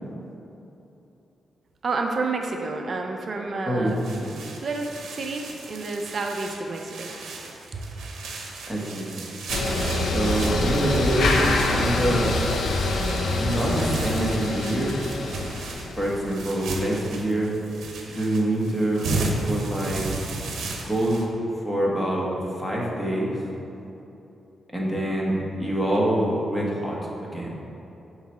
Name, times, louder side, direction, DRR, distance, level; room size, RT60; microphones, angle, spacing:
voice 1, 1.8-4.0 4.6-7.1 7.7-7.8, right 3 dB, 45° right, 3 dB, 0.6 m, -29 dB
voice 2, 3.6-4.3 8.7-9.3 10.1-12.4 13.4-15.0 16.0-17.5 18.1-19.1 19.3-20.0 20.8-21.3 21.6-22.3 22.6-23.4 24.7-27.0 27.3-27.5, right 1 dB, 5° left, -4 dB, 1.3 m, -25 dB
sound 1, 3.9-21.3, right 3 dB, 90° right, 0.8 m, -35 dB
sound 2, 9.5-16.3, left 2 dB, 70° left, 0.7 m, -25 dB
7.7 x 3.2 x 6.2 m, 2.9 s
cardioid pair, 115°, 0 cm